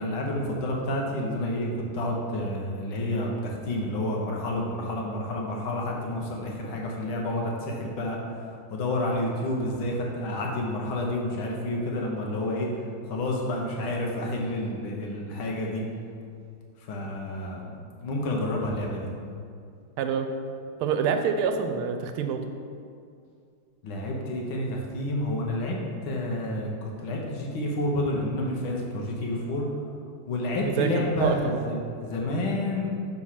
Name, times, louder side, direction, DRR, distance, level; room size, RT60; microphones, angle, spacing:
voice 1, 0.0-12.7 13.1-15.8 16.9-17.7 18.0-19.1 23.8-25.8 26.0-29.7 30.3-32.9, left 1 dB, 75° left, -1 dB, 1.8 m, -29 dB
voice 2, 20.0-20.3 20.8-22.4 30.5-31.7, right 6 dB, 90° right, 7 dB, 1.5 m, -27 dB
4.7 x 4.4 x 5.7 m, 2.3 s
omnidirectional pair, 2.3 m